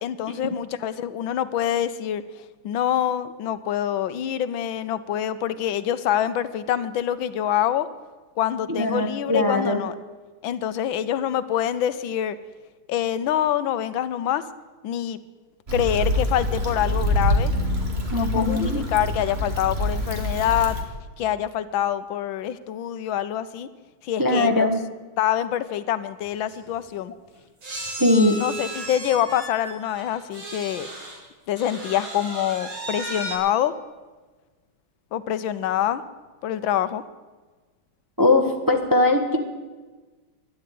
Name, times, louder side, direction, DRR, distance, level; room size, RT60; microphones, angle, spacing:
voice 1, 0.0-2.2 2.6-7.9 8.4-9.9 10.4-12.4 12.9-14.4 14.8-15.2 15.7-17.5 18.1-20.8 21.2-23.7 24.0-24.7 25.2-27.1 28.0-30.9 31.5-33.7 35.1-36.0 36.4-37.0, left 10 dB, 80° left, 14 dB, 1.5 m, -25 dB
voice 2, 8.7-9.8 18.1-18.8 24.2-24.8 28.0-28.4 38.2-39.4, left 2 dB, 15° right, 3 dB, 1.0 m, -20 dB
Stream / Traffic noise roadway noise / Trickle dribble, 15.7-20.8, left 1 dB, 30° right, 2.2 m, -25 dB
sound 1, 26.2-26.3 26.5-26.7 27.6-31.2 31.6-33.4, right 1 dB, 80° right, 4.3 m, -35 dB
12.0 x 10.5 x 9.3 m, 1.3 s
omnidirectional pair, 2.2 m